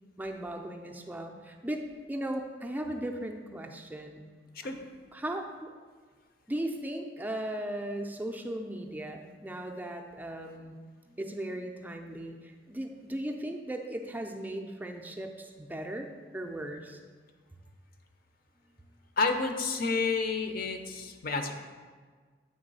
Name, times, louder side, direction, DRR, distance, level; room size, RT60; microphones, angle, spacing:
voice 1, 0.2-4.2 5.1-5.7 6.5-10.8 11.1-16.1 16.3-17.0, right 1 dB, 10° right, 3 dB, 0.4 m, -37 dB
voice 2, 19.2-21.5, left 4 dB, 55° left, 6 dB, 0.6 m, -30 dB
8.0 x 3.1 x 5.3 m, 1.5 s
head